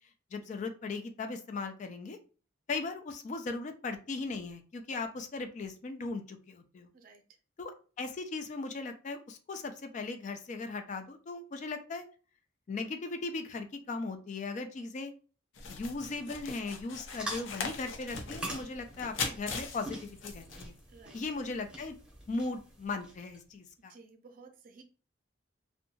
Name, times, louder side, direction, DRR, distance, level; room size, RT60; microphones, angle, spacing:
voice 1, 0.3-2.2 2.7-6.9 7.6-7.7 8.0-12.0 12.7-15.1 15.7-20.7 21.1-22.0 22.3-23.9, left 3 dB, 40° left, 7 dB, 0.3 m, -38 dB
sound 1, 15.5-20.8, left 4 dB, 85° left, 0.6 m, -40 dB
sound 2, 17.1-23.4, right 1 dB, 5° right, 0.7 m, -45 dB
voice 2, 20.9-21.2 23.9-24.8, right 4 dB, 45° right, 6 dB, 0.5 m, -55 dB
2.7 x 2.2 x 2.7 m, 0.37 s
head